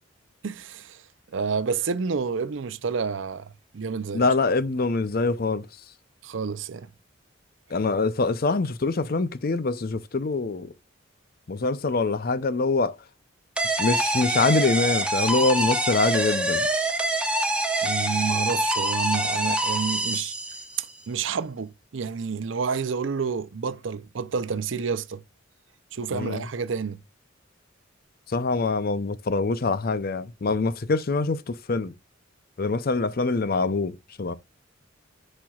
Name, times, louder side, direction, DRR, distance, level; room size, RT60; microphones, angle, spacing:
voice 1, 0.4-1.0 1.3-4.3 6.2-6.9 17.8-20.3 20.8-25.2 25.9-27.0, right 5 dB, 65° right, 0.6 m, -29 dB
voice 2, 4.1-5.7 7.7-10.7 11.5-12.9 13.8-16.7 26.1-26.4 28.3-31.9 32.6-34.3, left 3 dB, 45° left, 0.6 m, -24 dB
sound 1, 13.6-20.9, right 1 dB, 5° right, 1.0 m, -25 dB
10.5 x 4.4 x 2.4 m
head